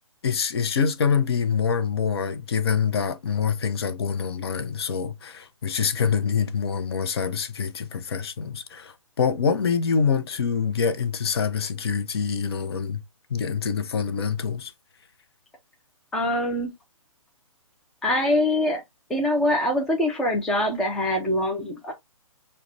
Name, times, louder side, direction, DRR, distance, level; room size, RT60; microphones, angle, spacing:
voice 1, 0.2-13.0 13.3-14.7, left 6 dB, 45° left, 0.6 m, -25 dB
voice 2, 16.1-16.7 18.0-18.8 19.1-21.9, left 1 dB, 5° left, 0.4 m, -24 dB
5.7 x 2.1 x 2.5 m
figure-of-eight pair, 140°, 18 cm